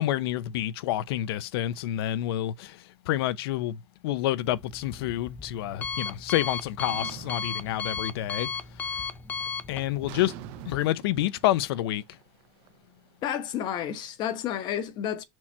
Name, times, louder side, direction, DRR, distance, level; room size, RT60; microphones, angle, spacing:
voice 1, 0.0-9.0 9.7-10.4 10.6-12.2, left 13 dB, 65° left, 0.6 m, -29 dB
Alarm, 4.4-10.8, left 5 dB, 10° left, 0.4 m, -35 dB
sound 1, 6.9-8.4 8.7-9.2 10.1-13.1, right 13 dB, 40° right, 0.6 m, -45 dB
voice 2, 13.2-15.2, left 10 dB, 30° left, 1.0 m, -31 dB
7.3 x 4.6 x 4.3 m
supercardioid pair, 165°, 14 cm